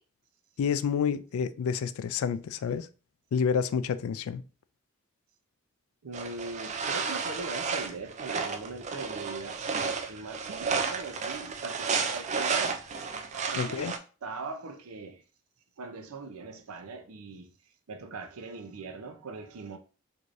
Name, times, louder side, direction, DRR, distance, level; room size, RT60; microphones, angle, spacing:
voice 1, 0.6-2.9 3.3-4.4 13.5-13.9, left 6 dB, 80° left, 0.3 m, -29 dB
voice 2, 6.0-12.8 13.3-14.0 14.2-15.2 15.8-17.5 17.9-19.8, right 3 dB, 85° right, 0.6 m, -41 dB
sound 1, 6.1-14.0, right 5 dB, 30° right, 0.3 m, -32 dB
4.6 x 2.7 x 2.5 m
head